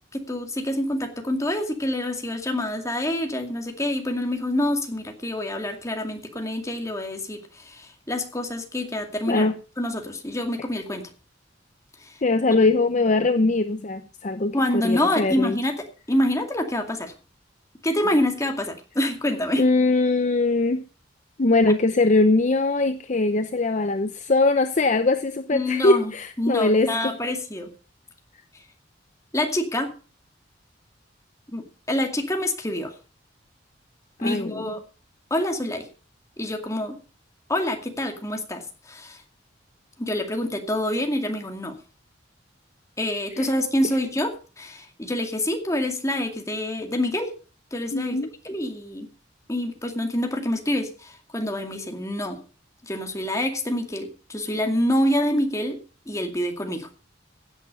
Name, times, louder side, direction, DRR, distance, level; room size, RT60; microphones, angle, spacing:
voice 1, 0.1-11.0 12.0-12.2 14.5-17.1 17.8-19.6 25.5-26.1 26.4-27.7 29.3-29.9 31.5-32.9 34.2-34.8 35.3-35.9 36.4-37.0 37.5-39.2 40.0-41.8 43.0-47.3 47.7-48.2 48.4-49.1 49.5-52.4 52.8-55.8 56.1-56.9, left 1 dB, 15° left, 4 dB, 2.3 m, -26 dB
voice 2, 12.2-15.6 19.6-20.8 21.4-27.1 34.2-34.7 43.3-43.5 47.9-48.3, left 2 dB, 40° left, 10 dB, 0.7 m, -21 dB
16.0 x 8.1 x 5.5 m, 0.35 s
head